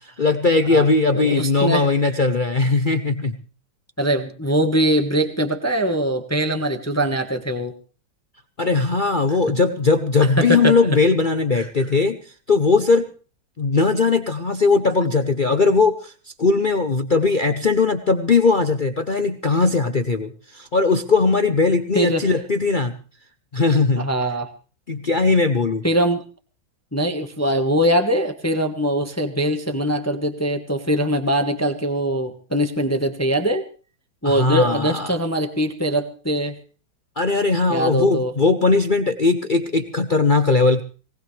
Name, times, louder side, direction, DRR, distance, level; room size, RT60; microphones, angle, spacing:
voice 1, 0.0-3.4 8.6-13.1 13.6-16.1 16.4-22.9 23.5-24.0 24.9-25.8 34.2-35.1 37.2-40.8, left 3 dB, 60° left, 7 dB, 0.5 m, -19 dB
voice 2, 1.1-1.9 4.0-7.7 10.4-10.7 11.6-11.7 21.9-22.3 24.0-24.5 25.8-26.2 26.9-33.7 34.2-36.5 37.7-38.3, right 1 dB, 10° left, 6 dB, 1.1 m, -22 dB
19.5 x 19.0 x 3.3 m, 0.38 s
omnidirectional pair, 2.1 m